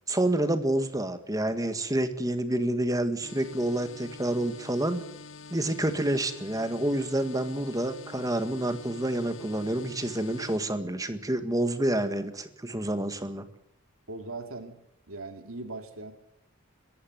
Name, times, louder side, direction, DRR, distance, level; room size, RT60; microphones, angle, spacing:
voice 1, 0.1-5.0 5.5-13.5, right 1 dB, 15° right, 10 dB, 1.7 m, -28 dB
sound 1, 3.2-10.6, left 4 dB, 65° left, 1.6 m, -46 dB
voice 2, 14.1-14.8 15.1-16.1, right 3 dB, 85° right, 7 dB, 2.6 m, -39 dB
23.0 x 14.5 x 9.4 m, 0.78 s
head